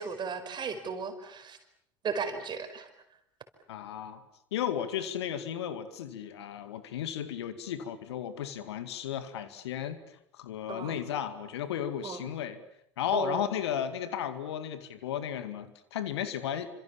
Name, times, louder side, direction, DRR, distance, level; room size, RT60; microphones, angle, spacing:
voice 1, 0.0-1.6 2.0-2.9 10.7-11.0 12.0-12.2 13.1-13.4, right 5 dB, 30° right, 8 dB, 5.0 m, -35 dB
voice 2, 3.7-4.2 4.5-10.0 10.3-12.6 13.0-16.7, left 9 dB, 65° left, 11 dB, 2.2 m, -34 dB
28.5 x 26.5 x 7.3 m, 0.76 s
figure-of-eight pair, 70°, 15 cm